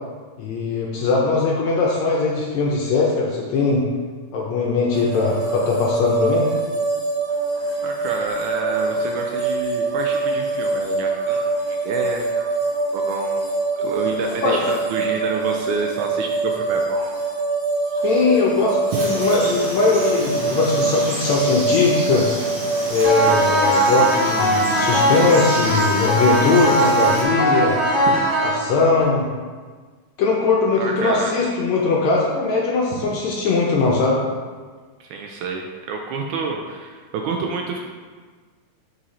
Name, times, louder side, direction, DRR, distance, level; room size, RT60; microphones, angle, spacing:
voice 1, 0.4-3.8 4.3-6.5 14.4-14.6 18.0-22.3 22.9-27.8 28.4-29.3 30.2-34.2, left 4 dB, 75° left, -3 dB, 1.8 m, -20 dB
sound 1, 4.9-23.5, right 3 dB, 35° right, 1.8 m, -24 dB
voice 2, 7.8-12.5 12.9-13.4 13.8-17.2 18.9-19.0 28.1-28.2 30.8-31.3 32.9-33.1 35.0-37.8, right 4 dB, 80° right, 1 dB, 1.9 m, -28 dB
Frog, 18.9-27.2, right 1 dB, 60° right, 2.5 m, -30 dB
sound 2, 23.0-29.0, right 1 dB, 15° right, 0.4 m, -19 dB
5.6 x 5.3 x 4.1 m, 1.5 s
omnidirectional pair, 3.7 m